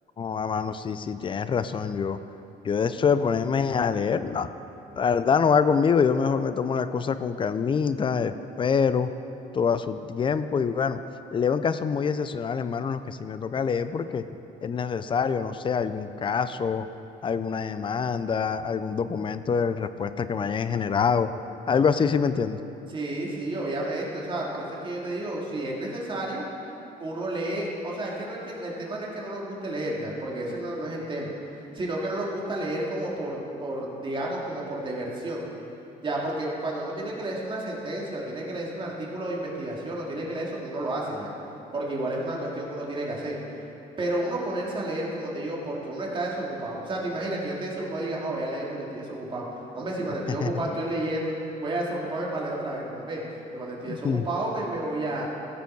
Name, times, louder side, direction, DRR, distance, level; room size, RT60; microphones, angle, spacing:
voice 1, 0.2-2.2 2.6-4.5 5.0-9.1 9.5-11.0 11.3-14.3 14.6-16.9 17.2-21.3 21.7-22.6 50.4-50.8 53.9-54.3, left 6 dB, 30° left, 12 dB, 0.4 m, -25 dB
voice 2, 22.9-26.5 27.0-31.3 31.7-35.5 36.0-41.3 41.7-43.4 44.0-49.5 49.7-55.3, right 1 dB, 30° right, -3 dB, 2.2 m, -31 dB
15.5 x 6.9 x 4.6 m, 2.9 s
cardioid pair, 110°, 17 cm